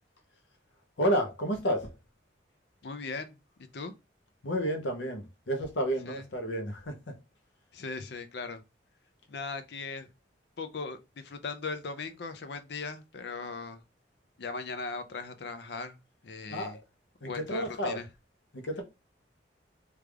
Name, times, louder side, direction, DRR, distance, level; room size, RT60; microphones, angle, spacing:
voice 1, 1.0-1.9 4.4-7.1 16.5-16.8 17.2-18.0 18.5-18.8, equal, 85° left, 0.8 m, -31 dB
voice 2, 2.8-3.4 3.7-3.9 6.1-6.3 7.7-8.6 9.3-10.1 10.6-13.8 14.4-16.0 16.2-16.8 17.3-18.1, left 4 dB, 65° left, 0.5 m, -38 dB
3.3 x 2.4 x 3.3 m
head